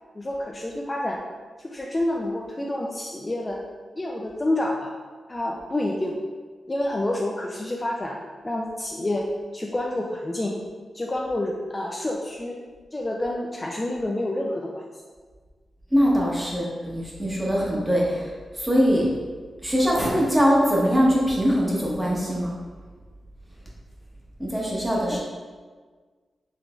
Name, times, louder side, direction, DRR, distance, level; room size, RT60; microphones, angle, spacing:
voice 1, 0.1-1.2 1.6-3.6 4.0-4.9 5.3-6.2 6.7-8.2 8.4-9.3 9.5-10.5 10.9-12.6 12.9-14.8 24.9-25.2, left 1 dB, 25° left, -2 dB, 0.3 m, -28 dB
voice 2, 15.9-18.3 18.6-19.1 19.6-22.5 24.4-25.2, equal, 10° right, -5 dB, 0.9 m, -22 dB
3.7 x 3.2 x 2.4 m, 1.5 s
cardioid pair, 80°, 0 cm